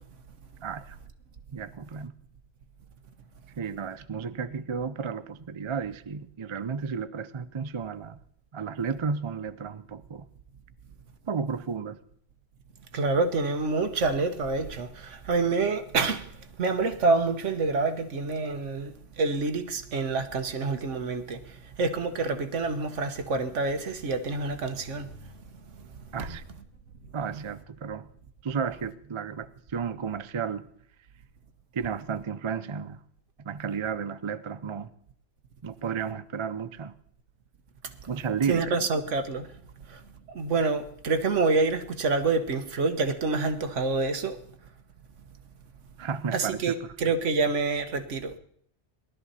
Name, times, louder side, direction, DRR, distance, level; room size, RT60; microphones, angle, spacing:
voice 1, 0.6-1.0 1.5-2.1 3.6-8.2 8.5-10.3 11.3-12.0 26.1-26.4 27.1-28.1 28.4-30.7 31.7-33.0 33.4-34.9 35.6-36.9 38.1-38.9 46.0-47.2, right 6 dB, 40° right, 0.4 m, -33 dB
voice 2, 12.9-16.3 16.6-25.1 38.5-39.5 39.9-40.0 40.3-44.4 46.3-48.3, right 3 dB, 80° right, 1.5 m, -27 dB
18.5 x 12.5 x 4.2 m
omnidirectional pair, 1.2 m